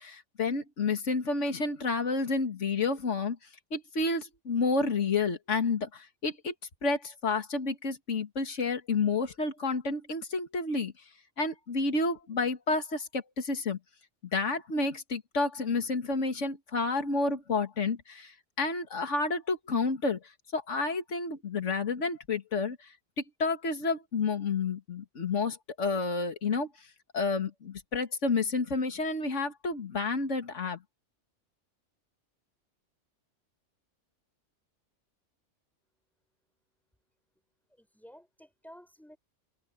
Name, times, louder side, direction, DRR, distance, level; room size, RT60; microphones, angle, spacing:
voice 1, 0.0-3.4 3.7-6.5 6.8-10.9 11.4-13.8 14.3-20.2 20.5-22.8 23.4-26.7 27.1-30.8, left 3 dB, 75° left, 2.3 m, -30 dB
voice 2, 37.8-39.2, equal, ahead, 6.5 m, -53 dB
omnidirectional pair, 1.3 m